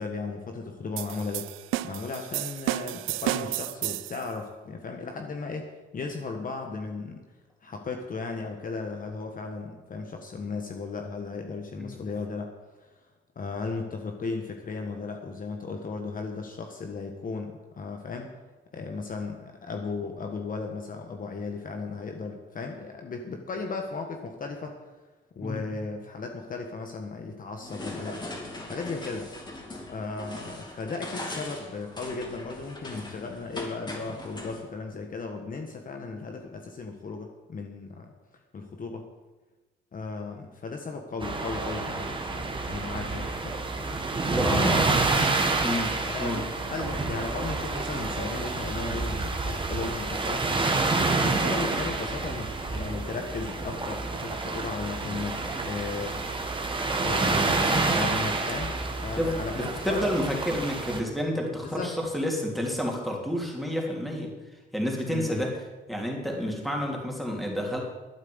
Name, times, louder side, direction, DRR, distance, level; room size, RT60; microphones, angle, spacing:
voice 1, 0.0-1.4 1.8-7.2 7.6-12.5 12.8-12.9 13.3-18.3 18.7-24.7 25.3-28.2 28.7-29.3 29.9-38.1 38.5-39.1 39.9-43.6 44.4-45.1 46.0-50.5 51.1-56.2 57.0-60.1 61.6-61.9 65.1-65.5, left 4 dB, 45° left, 3 dB, 1.5 m, -35 dB
sound 1, 1.0-4.2, right 16 dB, 90° right, 0.4 m, -32 dB
sound 2, 27.6-34.6, left 1 dB, 20° left, 3.0 m, -40 dB
sound 3, 41.2-61.0, right 3 dB, 25° right, 2.0 m, -28 dB
voice 2, 44.3-44.8 45.6-46.5 59.2-64.3 64.7-65.5 65.9-67.8, equal, ahead, -1 dB, 3.4 m, -29 dB
12.0 x 8.9 x 8.0 m, 1.2 s
cardioid pair, 90°, 20 cm